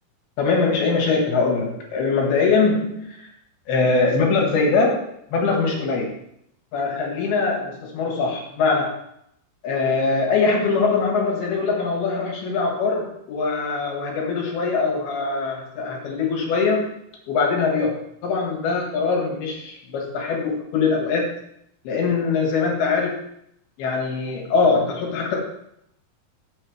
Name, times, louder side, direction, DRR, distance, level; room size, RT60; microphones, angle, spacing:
voice 1, 0.4-3.3 3.7-5.1 5.3-6.1 6.7-9.0 9.6-16.9 17.3-21.3 21.9-23.2 23.8-25.4, left 4 dB, 85° left, 0 dB, 3.5 m, -22 dB
10.0 x 7.6 x 3.3 m, 0.75 s
omnidirectional pair, 4.4 m